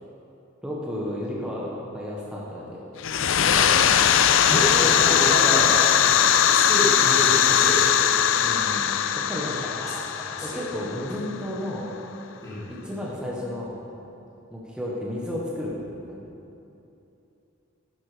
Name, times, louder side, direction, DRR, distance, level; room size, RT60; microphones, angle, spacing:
voice 1, 0.6-2.8 3.4-3.8 4.8-4.9 8.4-9.0 9.3-9.7 10.4-12.0 12.7-13.8 14.5-15.8 16.1-16.2, left 1 dB, 5° right, -5 dB, 1.5 m, -32 dB
sound 1, 3.0-11.5, left 9 dB, 70° left, 0.5 m, -20 dB
voice 2, 3.5-3.9 4.5-7.9 9.5-10.6 12.4-12.6, left 1 dB, 20° left, -11 dB, 3.3 m, -29 dB
11.0 x 11.0 x 5.2 m, 2.8 s
head